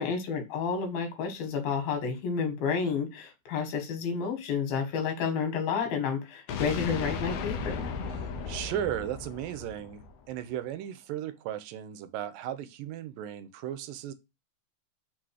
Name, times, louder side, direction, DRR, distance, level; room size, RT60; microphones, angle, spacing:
voice 1, 0.0-7.8, left 6 dB, 90° left, 3.5 m, -30 dB
sound 1, 6.5-10.4, left 5 dB, 70° left, 1.6 m, -35 dB
voice 2, 8.2-14.1, right 11 dB, 85° right, 2.3 m, -36 dB
6.1 x 3.8 x 4.8 m
omnidirectional pair, 4.0 m